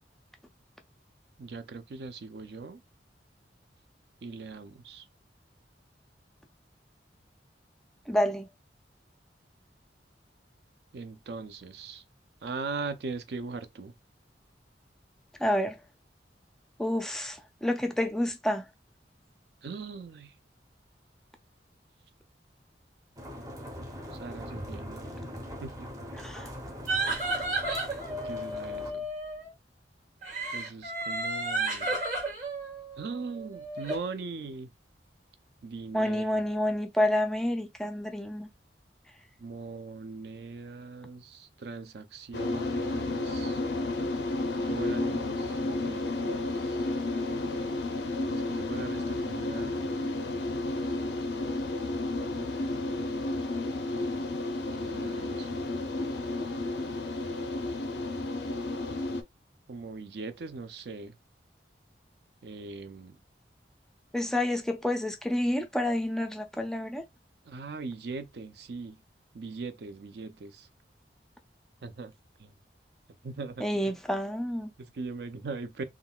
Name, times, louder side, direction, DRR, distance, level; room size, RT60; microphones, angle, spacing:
voice 1, 1.4-2.8 4.2-5.1 10.9-12.0 12.4-13.9 19.6-20.4 24.1-25.2 25.6-26.0 28.2-29.1 30.5-32.0 33.0-34.7 35.6-36.4 39.4-43.6 44.6-46.9 48.3-50.1 52.3-52.6 54.8-55.7 59.7-61.2 62.4-63.2 67.4-69.0 69.3-70.7 71.8-72.5 73.2-74.0 74.8-75.8, right 4 dB, 65° right, 0.4 m, -40 dB
voice 2, 8.1-8.5 15.4-15.8 16.8-18.7 26.2-26.5 35.9-38.5 64.1-67.0 73.6-74.7, left 1 dB, 5° left, 0.3 m, -29 dB
sound 1, 23.2-28.9, equal, 20° right, 0.7 m, -41 dB
sound 2, 26.9-29.5 30.2-34.0, right 2 dB, 45° right, 1.4 m, -33 dB
sound 3, 42.3-59.2, left 2 dB, 80° left, 0.5 m, -32 dB
3.6 x 2.3 x 2.3 m
head